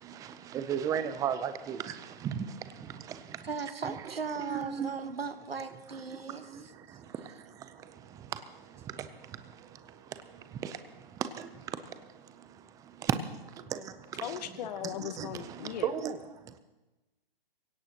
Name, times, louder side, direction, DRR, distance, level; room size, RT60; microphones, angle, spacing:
voice 1, 0.0-3.5 3.8-3.9 4.4-4.9 6.1-14.4 14.8-16.2 16.4-16.6, right 8 dB, 10° right, 0.6 m, -37 dB
voice 2, 3.4-7.0, right 5 dB, 90° right, 1.4 m, -38 dB
voice 3, 14.2-15.9, left 10 dB, 45° left, 1.1 m, -38 dB
27.0 x 17.0 x 3.0 m
hypercardioid pair, 130°, 29 cm